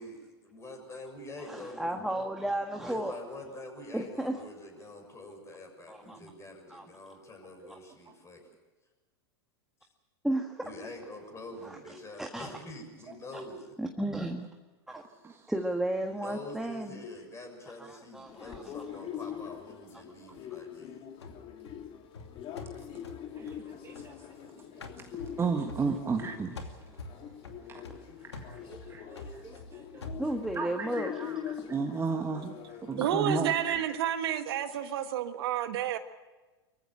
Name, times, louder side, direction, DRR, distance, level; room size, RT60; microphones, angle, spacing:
voice 1, 0.5-2.0 2.8-7.6 8.2-8.4 10.6-13.8 15.1-15.2 16.1-21.0, left 2 dB, 20° left, 7.0 m, -45 dB
voice 2, 1.4-3.1 3.9-4.4 5.9-6.3 6.7-6.8 10.2-10.6 11.6-11.8 12.2-12.5 13.3-13.4 13.8-14.5 14.9-15.0 15.5-17.1 17.9-18.7 25.9-26.0 30.2-31.1, right 1 dB, 5° right, 1.6 m, -33 dB
sound 1, 18.3-33.8, left 9 dB, 40° left, 3.0 m, -43 dB
sound 2, 21.2-24.5 24.8-26.3 26.6-30.7, left 3 dB, 90° left, 2.6 m, -46 dB
voice 3, 23.3-24.3 24.6-24.7 25.0-27.0 27.7-27.8 28.2-34.1, right 4 dB, 20° right, 1.6 m, -35 dB
voice 4, 33.0-36.0, right 10 dB, 70° right, 1.5 m, -30 dB
24.0 x 15.0 x 9.0 m
hypercardioid pair, 100°, 14 cm